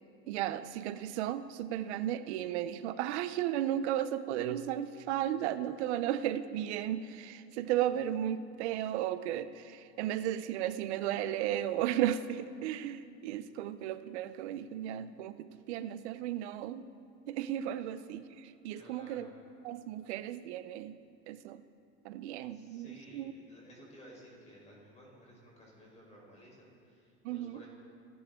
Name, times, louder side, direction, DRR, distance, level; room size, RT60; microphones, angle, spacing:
voice 1, 0.3-16.9 17.3-19.3 19.6-21.0 21.3-21.6 22.0-23.3 27.2-27.6, right 11 dB, 85° right, 12 dB, 0.8 m, -35 dB
voice 2, 18.7-19.3 22.5-27.7, equal, 20° left, -3 dB, 4.4 m, -56 dB
29.5 x 11.5 x 3.8 m, 2.4 s
supercardioid pair, 130°, 33 cm